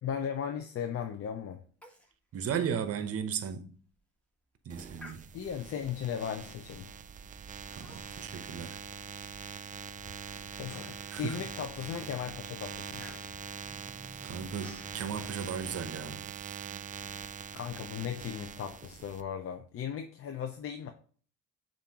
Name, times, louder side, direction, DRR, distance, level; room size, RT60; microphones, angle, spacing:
voice 1, 0.0-1.6 5.3-6.9 10.5-13.1 17.5-20.9, left 8 dB, 45° left, 0.6 m, -37 dB
Human voice, 1.8-2.1 2.5-2.6 3.1-3.2 3.7-4.0 5.0-5.7 6.4-6.7 7.7-8.3 8.7-9.7 10.2-10.3 10.8-11.4 11.8-12.1 12.3-14.9, left 1 dB, 5° left, 1.3 m, -54 dB
voice 2, 2.3-3.7 4.6-5.3 7.8-8.8 11.1-11.4 14.2-16.2, right 7 dB, 50° right, 0.8 m, -35 dB
sound 1, 4.7-19.2, right 8 dB, 25° right, 0.3 m, -43 dB
Sliding door, 10.3-16.3, left 1 dB, 85° left, 1.4 m, -56 dB
6.9 x 2.6 x 2.9 m
supercardioid pair, 70°, 32 cm